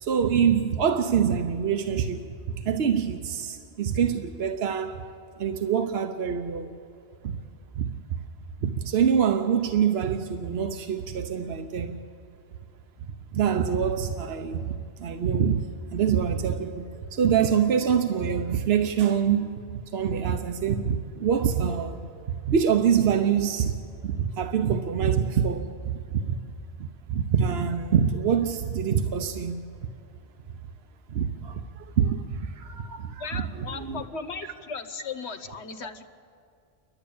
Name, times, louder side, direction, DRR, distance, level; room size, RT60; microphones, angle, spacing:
voice 1, 0.0-5.0 5.4-6.7 7.2-7.4 7.8-8.2 8.6-12.0 13.3-15.7 15.9-19.5 19.9-22.0 22.3-23.8 24.0-26.4 26.8-29.7 31.1-34.0, right 7 dB, 75° right, 1.1 m, -25 dB
voice 2, 33.2-36.0, left 5 dB, 90° left, 1.4 m, -36 dB
29.0 x 12.5 x 8.6 m
omnidirectional pair, 1.1 m